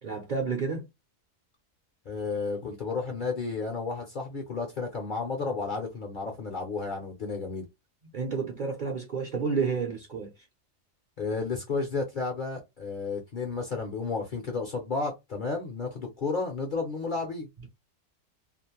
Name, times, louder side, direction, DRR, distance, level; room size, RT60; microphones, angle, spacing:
voice 1, 0.0-0.8 8.1-10.3, right 5 dB, 50° right, 0.6 m, -30 dB
voice 2, 2.1-7.7 11.2-17.5, left 4 dB, 50° left, 0.6 m, -32 dB
2.5 x 2.1 x 2.8 m
omnidirectional pair, 1.4 m